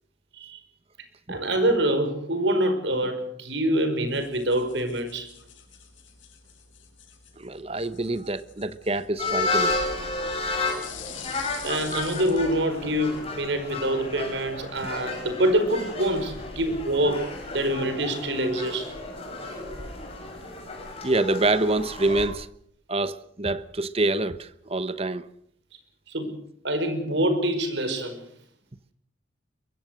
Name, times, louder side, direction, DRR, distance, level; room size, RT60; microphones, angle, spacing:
voice 1, 1.3-5.3 11.6-18.9 26.1-26.4 26.6-28.2, right 1 dB, 65° right, 5.1 m, -25 dB
sound 1, 4.1-13.3, left 8 dB, 80° left, 5.8 m, -47 dB
voice 2, 7.4-9.8 19.5-19.6 21.0-22.5 22.9-25.3, right 2 dB, 30° right, 1.0 m, -26 dB
sound 2, 9.2-22.3, left 2 dB, 30° left, 6.6 m, -32 dB
23.5 x 22.5 x 6.5 m
head